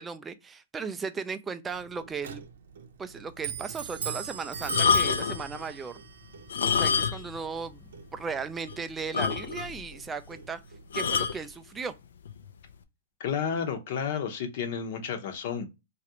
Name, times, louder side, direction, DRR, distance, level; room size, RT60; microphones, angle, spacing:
voice 1, 0.0-2.4 3.0-6.0 6.7-7.8 8.1-10.6 10.9-11.9, right 5 dB, 10° right, 0.3 m, -36 dB
Clock, 1.6-10.9, right 7 dB, 75° right, 0.6 m, -41 dB
sound 1, 4.6-5.5 6.4-7.4 7.7-7.8 8.3-8.4 8.7-8.8 9.1-9.8 10.9-11.4 12.3-12.5, left 6 dB, 85° left, 0.5 m, -26 dB
voice 2, 13.2-15.7, left 7 dB, 50° left, 0.8 m, -31 dB
3.1 x 2.5 x 2.7 m
hypercardioid pair, 160°, 0 cm